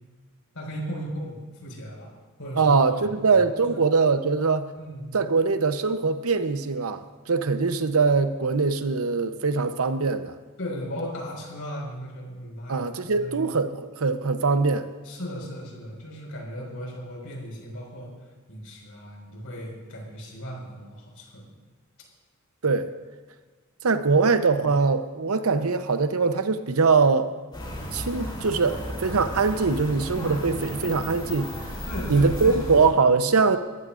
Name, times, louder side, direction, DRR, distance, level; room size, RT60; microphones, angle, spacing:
voice 1, 0.5-2.1 2.4-3.1 3.6-3.8 4.7-5.1 10.6-12.8 13.1-13.6 15.0-18.1 18.5-21.5 24.1-24.2 31.9-32.8, equal, 70° left, -1 dB, 5.1 m, -36 dB
voice 2, 2.6-4.7 5.1-10.3 12.7-14.9 22.6-22.9 23.8-27.4 27.9-31.5 32.1-33.6, right 4 dB, 80° right, 10 dB, 0.8 m, -22 dB
sound 1, 27.5-32.9, equal, 20° left, 3.5 m, -34 dB
21.0 x 15.0 x 2.5 m, 1.4 s
head